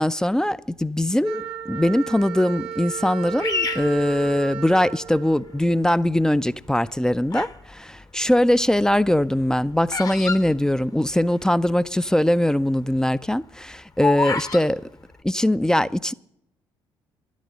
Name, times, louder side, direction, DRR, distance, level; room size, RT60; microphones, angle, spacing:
voice 1, 0.0-14.8 15.2-16.1, left 1 dB, 5° left, 0.4 m, -21 dB
Wind instrument woodwind instrument, 1.2-6.0, right 9 dB, 55° right, 0.8 m, -35 dB
Bird vocalization bird call bird song, 3.4-4.9 5.5-6.0 6.7-7.7 7.9-11.4 11.7-11.8 12.0-12.3 12.7-14.7, left 4 dB, 30° left, 0.9 m, -29 dB
11.5 x 9.4 x 7.7 m
figure-of-eight pair, 45°, 12 cm